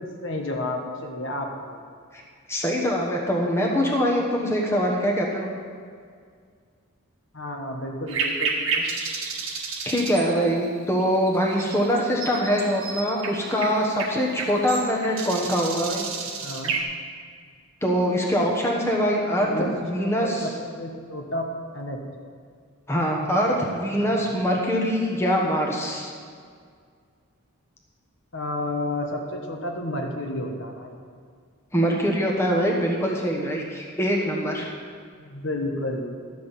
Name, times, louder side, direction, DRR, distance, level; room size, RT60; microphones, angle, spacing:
voice 1, 0.0-1.8 7.3-8.9 16.4-16.8 19.4-20.5 20.8-21.4 21.7-22.0 24.0-24.4 28.3-31.0 35.2-36.1, left 1 dB, 55° left, 2 dB, 1.2 m, -31 dB
voice 2, 2.5-5.5 9.8-16.0 17.8-19.5 19.8-20.5 22.9-26.1 31.7-34.7, equal, 10° left, -2 dB, 1.2 m, -23 dB
sound 1, 8.1-16.8, right 4 dB, 70° right, 1.6 m, -31 dB
12.0 x 6.1 x 7.4 m, 2.1 s
head